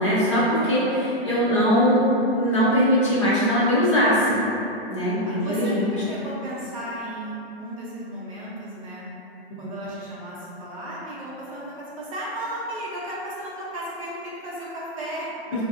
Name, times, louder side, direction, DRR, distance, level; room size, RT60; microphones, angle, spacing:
voice 1, 0.0-4.4 4.9-5.9, equal, 30° left, -9 dB, 0.5 m, -21 dB
voice 2, 1.3-1.6 5.3-9.0 9.6-15.3, right 1 dB, 35° right, -7 dB, 0.6 m, -35 dB
3.8 x 2.6 x 2.4 m, 3.0 s
hypercardioid pair, 165°, 32 cm